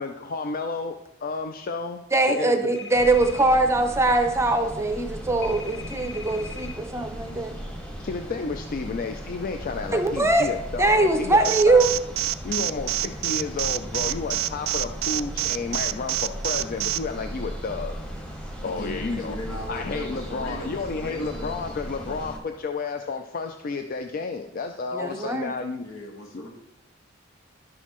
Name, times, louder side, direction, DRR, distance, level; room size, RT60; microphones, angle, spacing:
voice 1, 0.0-2.0 2.3-2.7 8.0-11.8 12.4-18.0 18.6-19.4 19.7-25.8, left 4 dB, 45° left, 6 dB, 0.4 m, -31 dB
voice 2, 2.1-7.6 9.9-10.5 10.8-11.9 24.9-25.6, right 2 dB, 15° right, 7 dB, 0.6 m, -22 dB
sound 1, 2.7-3.4 5.4-6.8, left 5 dB, 65° left, 1.0 m, -40 dB
sound 2, 2.9-22.4, equal, 5° left, 1.0 m, -37 dB
Alarm, 11.4-17.0, right 16 dB, 75° right, 0.3 m, -26 dB
voice 3, 18.6-21.7 22.0-22.3 25.8-26.5, equal, 85° left, 1 dB, 1.6 m, -38 dB
11.0 x 6.2 x 3.0 m, 0.96 s
head